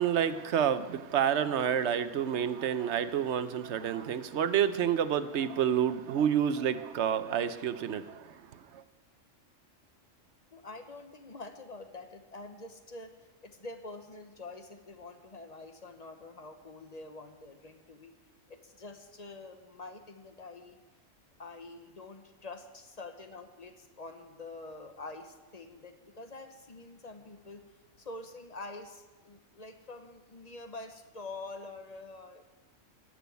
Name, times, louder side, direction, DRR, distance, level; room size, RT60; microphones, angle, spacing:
voice 1, 0.0-8.8, right 9 dB, 70° right, 12 dB, 0.9 m, -29 dB
voice 2, 10.5-18.1 18.5-20.8 21.4-32.4, left 3 dB, 35° left, 7 dB, 1.0 m, -46 dB
14.0 x 6.2 x 9.3 m, 1.2 s
omnidirectional pair, 1.3 m